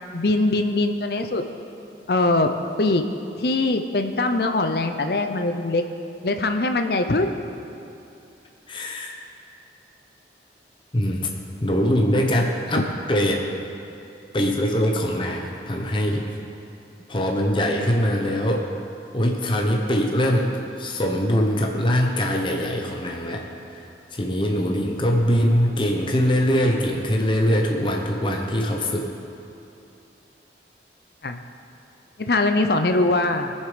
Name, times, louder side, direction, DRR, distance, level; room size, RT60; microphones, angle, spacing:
voice 1, 0.1-1.4 2.1-2.5 2.8-3.1 3.4-5.8 6.2-7.4 31.2-31.4 32.2-33.5, left 2 dB, 60° left, 7 dB, 0.7 m, -22 dB
voice 2, 8.7-9.2 10.9-13.4 14.3-16.2 17.1-18.7 19.1-20.5 20.8-23.4 24.1-29.1, equal, 30° left, 1 dB, 0.9 m, -22 dB
20.0 x 7.3 x 5.1 m, 2.7 s
head